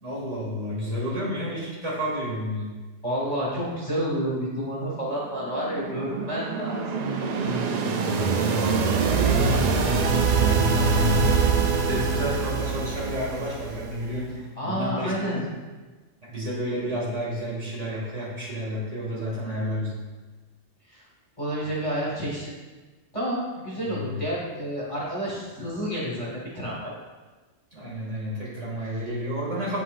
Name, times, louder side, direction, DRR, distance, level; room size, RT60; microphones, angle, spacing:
voice 1, 0.0-2.7 8.0-14.3 14.6-15.4 16.2-20.0 23.9-24.2 27.7-29.8, equal, 70° right, -6 dB, 2.7 m, -31 dB
voice 2, 3.0-6.9 14.6-15.4 20.9-21.0 21.4-22.5 23.1-26.9, equal, 25° left, -6 dB, 1.6 m, -29 dB
sound 1, 5.3-14.2, right 5 dB, 85° right, 0.3 m, -24 dB
8.4 x 5.7 x 2.5 m, 1.3 s
omnidirectional pair, 1.3 m